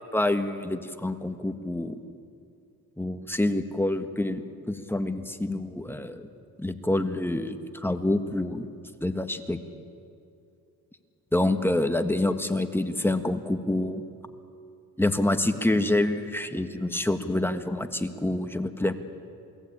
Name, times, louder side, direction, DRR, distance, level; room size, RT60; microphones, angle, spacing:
voice 1, 0.1-2.0 3.0-6.3 6.6-8.7 9.0-9.6 11.3-14.0 15.0-18.9, left 1 dB, 5° left, 7 dB, 1.5 m, -27 dB
28.0 x 20.0 x 8.8 m, 2.5 s
cardioid pair, 100°, 36 cm